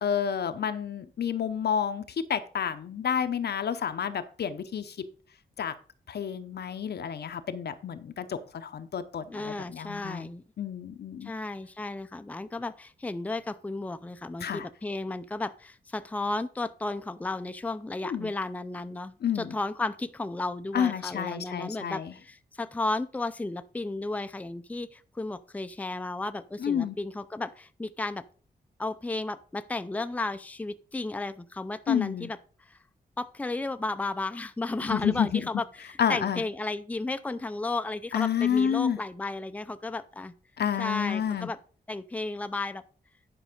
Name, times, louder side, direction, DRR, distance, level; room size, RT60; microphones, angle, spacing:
voice 1, 0.0-5.0 5.6-5.7 6.1-10.3 10.6-11.3 14.4-14.7 18.0-18.3 19.2-19.6 20.7-22.1 26.6-27.0 31.9-32.3 34.8-35.5 36.0-36.4 38.1-39.0 40.6-41.5, left 8 dB, 85° left, 10 dB, 0.8 m, -29 dB
voice 2, 9.3-10.4 11.2-28.2 28.8-32.8 33.2-40.3 40.8-41.6 41.9-42.8, left 2 dB, 10° left, 11 dB, 0.4 m, -34 dB
10.0 x 5.4 x 5.2 m, 0.41 s
wide cardioid pair, 130°, 17 cm